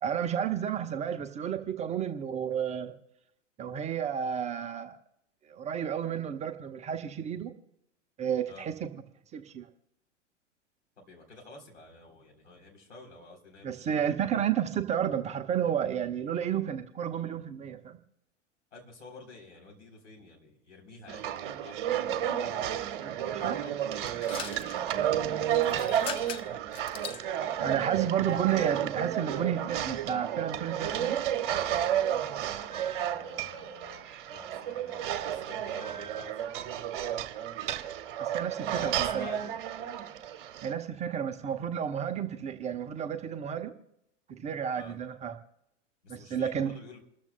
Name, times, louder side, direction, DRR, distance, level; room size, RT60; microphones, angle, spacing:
voice 1, 0.0-2.9 3.6-5.0 5.5-7.5 8.2-8.9 9.3-9.7 13.6-18.0 23.0-23.6 27.6-31.2 38.2-39.2 40.6-43.7 44.4-45.3 46.1-46.7, right 9 dB, 20° right, 6 dB, 0.8 m, -31 dB
voice 2, 11.0-13.9 18.7-22.8 23.3-23.7 24.3-26.6 33.1-36.9 38.8-39.5 44.7-45.0 46.0-47.0, left 3 dB, 70° left, 1 dB, 3.6 m, -50 dB
sound 1, 21.1-40.7, right 10 dB, 45° right, 1.3 m, -32 dB
sound 2, 24.0-24.8 25.5-27.2, left 8 dB, 15° left, 0.4 m, -41 dB
29.0 x 13.5 x 2.2 m, 0.80 s
figure-of-eight pair, 100°, 37 cm